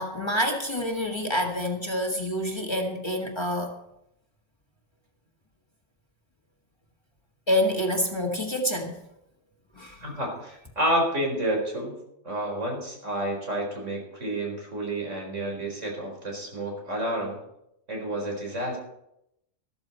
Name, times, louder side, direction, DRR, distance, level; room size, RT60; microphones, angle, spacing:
voice 1, 0.0-3.8 7.5-9.0 9.7-10.0, left 1 dB, 20° left, 1 dB, 1.7 m, -27 dB
voice 2, 10.0-12.0 12.2-17.4 17.9-18.8, right 1 dB, 75° right, 0 dB, 4.7 m, -29 dB
13.5 x 13.5 x 4.3 m, 0.79 s
omnidirectional pair, 1.3 m